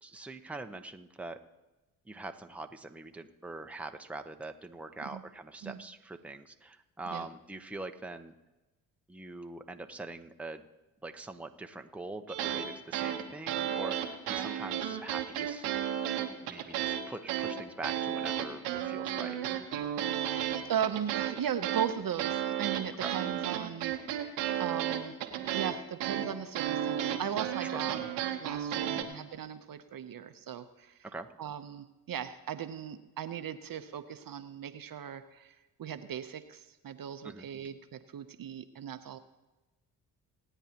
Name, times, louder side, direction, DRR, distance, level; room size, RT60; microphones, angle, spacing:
voice 1, 0.0-1.4 2.1-8.3 9.1-10.6 11.0-15.7 16.4-19.4 23.0-23.1 27.6-27.8 28.9-29.1 31.0-31.3 37.2-37.5, right 2 dB, 5° right, 6 dB, 0.8 m, -43 dB
sound 1, 12.3-12.7 12.9-17.0 17.3-29.0, right 10 dB, 90° right, 1.1 m, -33 dB
voice 2, 20.7-25.2 25.5-28.0 28.4-31.0 31.4-39.2, right 9 dB, 50° right, 10 dB, 0.8 m, -38 dB
26.0 x 9.0 x 2.9 m, 1.1 s
supercardioid pair, 50°, 43 cm